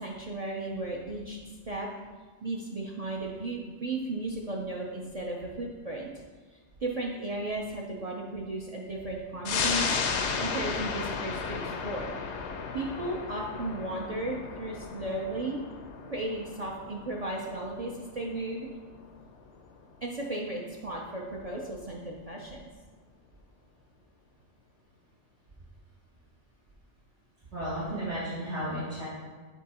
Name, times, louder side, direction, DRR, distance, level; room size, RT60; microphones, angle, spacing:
voice 1, 0.0-1.4 1.7-1.9 2.4-6.1 6.8-12.1 12.7-15.6 16.1-18.7 20.0-22.6, right 2 dB, 45° right, -2 dB, 0.6 m, -35 dB
sound 1, 9.4-20.4 20.8-20.9, left 5 dB, 90° left, 0.9 m, -35 dB
voice 2, 27.5-29.1, equal, 80° right, -10 dB, 1.7 m, -33 dB
7.3 x 3.6 x 4.2 m, 1.4 s
omnidirectional pair, 1.1 m